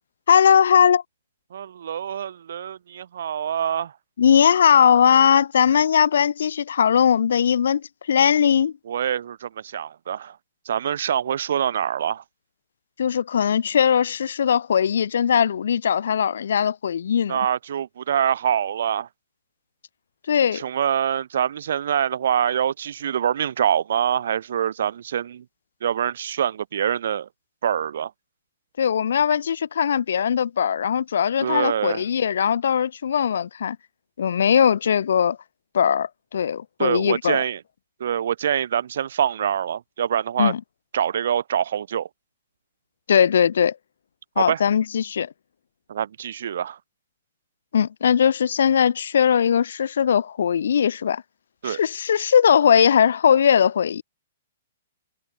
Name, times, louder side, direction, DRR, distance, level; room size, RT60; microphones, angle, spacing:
voice 1, 0.3-1.0 4.2-8.7 13.0-17.4 20.3-20.6 28.8-33.8 34.2-35.4 35.7-37.4 40.4-40.6 43.1-43.7 44.4-45.3 47.7-51.2 51.6-54.0, left 8 dB, 75° left, 1.4 m, -19 dB
voice 2, 1.5-3.9 8.9-10.4 10.6-12.2 17.3-19.1 20.5-25.4 25.8-27.3 27.6-28.1 31.4-32.0 36.8-37.6 38.0-40.5 40.9-42.1 44.4-44.6 45.9-46.8 51.6-51.8, right 9 dB, 70° right, 1.2 m, -25 dB
hypercardioid pair, 150°, 0 cm